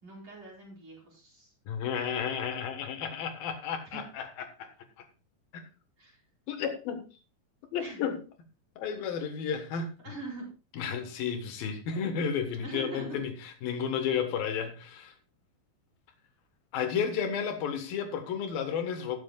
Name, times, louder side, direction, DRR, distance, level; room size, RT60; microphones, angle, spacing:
voice 1, 0.0-1.5 3.9-4.0 6.0-6.2 7.8-8.1 10.0-10.5 12.5-13.2, right 1 dB, 30° right, -4 dB, 5.6 m, -42 dB
voice 2, 1.7-4.3 4.6-4.7 5.5-5.6 6.5-7.0 7.7-8.2 8.8-9.9 10.8-13.3 13.6-15.1 16.7-19.2, left 7 dB, 75° left, 6 dB, 3.2 m, -32 dB
19.0 x 7.5 x 2.4 m, 0.32 s
omnidirectional pair, 4.3 m